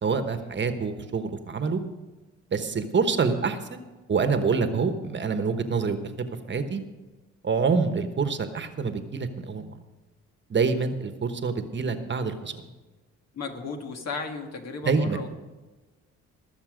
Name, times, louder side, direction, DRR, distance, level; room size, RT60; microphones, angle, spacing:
voice 1, 0.0-1.8 2.5-3.8 4.1-6.8 7.4-9.8 10.5-12.6 14.8-15.2, right 5 dB, 40° right, 8 dB, 1.2 m, -26 dB
voice 2, 13.3-15.3, left 4 dB, 60° left, 4 dB, 1.9 m, -35 dB
20.5 x 7.1 x 5.1 m, 1.2 s
cardioid pair, 90°, 30 cm